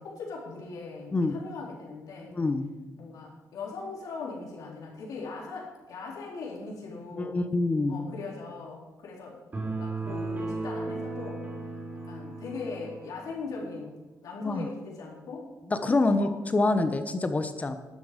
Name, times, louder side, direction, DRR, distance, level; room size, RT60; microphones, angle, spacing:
voice 1, 0.0-2.4 3.0-7.4 7.9-11.4 12.0-15.5 16.0-16.3, left 4 dB, 80° left, -2 dB, 4.2 m, -40 dB
voice 2, 1.1-1.5 2.3-2.7 7.1-8.1 14.4-14.7 15.7-17.8, left 2 dB, 25° left, 9 dB, 1.0 m, -26 dB
sound 1, 9.5-13.1, right 3 dB, 30° right, 4.5 m, -35 dB
12.0 x 11.5 x 5.2 m, 1.1 s
cardioid pair, 125°, 6 cm